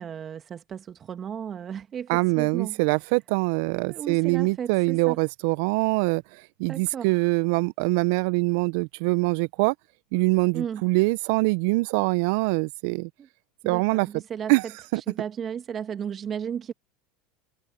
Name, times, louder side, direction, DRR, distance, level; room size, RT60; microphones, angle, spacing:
voice 1, 0.0-2.8 3.9-5.2 6.7-7.1 10.5-10.9 13.2-13.3 13.6-14.5 15.0-16.7, right 8 dB, 35° right, 2.0 m, -34 dB
voice 2, 2.1-6.2 6.6-9.7 10.1-13.1 13.6-14.1 14.5-14.6 14.9-15.0, right 27 dB, 65° right, 1.0 m, -23 dB
hypercardioid pair, 80°, 0 cm